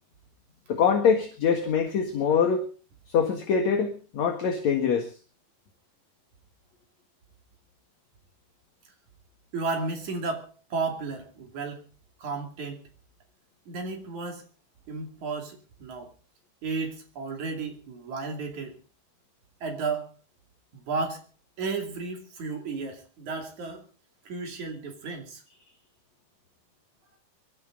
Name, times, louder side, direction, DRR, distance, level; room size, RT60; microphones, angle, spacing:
voice 1, 0.7-2.7 3.1-5.1, left 6 dB, 55° left, 4 dB, 2.6 m, -24 dB
voice 2, 9.5-11.8 12.2-12.8 13.7-14.4 14.9-16.1 16.6-18.8 19.6-20.1 20.9-21.3 21.6-23.8 24.3-25.4, right 4 dB, 50° right, 3 dB, 3.8 m, -33 dB
23.5 x 13.5 x 3.9 m, 0.36 s
omnidirectional pair, 4.5 m